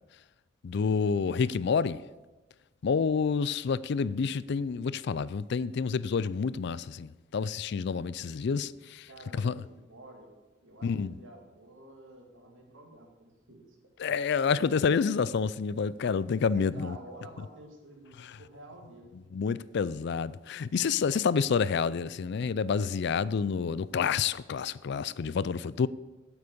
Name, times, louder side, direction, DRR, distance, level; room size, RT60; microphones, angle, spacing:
voice 1, 0.6-2.0 2.8-9.1 9.4-9.6 10.8-11.1 14.0-17.0 19.3-25.9, left 5 dB, 60° left, 0.4 m, -28 dB
voice 2, 9.1-10.3 10.6-13.8 16.5-19.2, right 1 dB, 90° right, 2.5 m, -50 dB
8.7 x 8.0 x 6.9 m
head